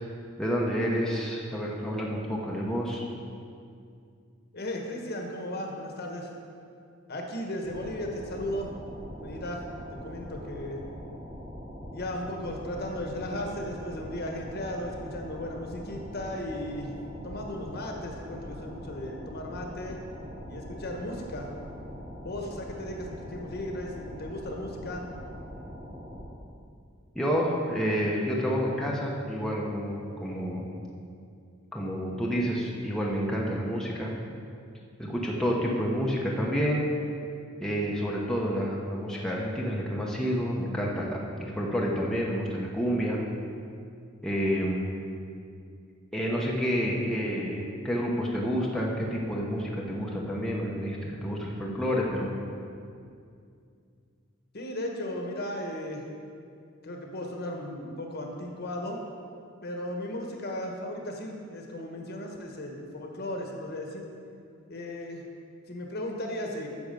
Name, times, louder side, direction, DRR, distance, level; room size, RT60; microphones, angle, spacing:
voice 1, 0.4-3.0 27.1-30.7 31.7-34.1 35.0-36.9 37.6-43.2 44.2-44.9 46.1-52.4, equal, 5° left, -3 dB, 0.9 m, -29 dB
voice 2, 4.5-6.3 7.1-8.7 9.2-9.6 9.9-10.8 11.9-17.0 17.2-20.0 20.5-21.5 22.2-25.1 54.5-56.0 56.8-59.0 59.6-64.1 64.7-65.2 65.7-66.7, left 1 dB, 50° left, 1 dB, 1.2 m, -36 dB
sound 1, 7.6-26.2, equal, 50° right, 2.6 m, -42 dB
9.6 x 7.0 x 5.3 m, 2.4 s
head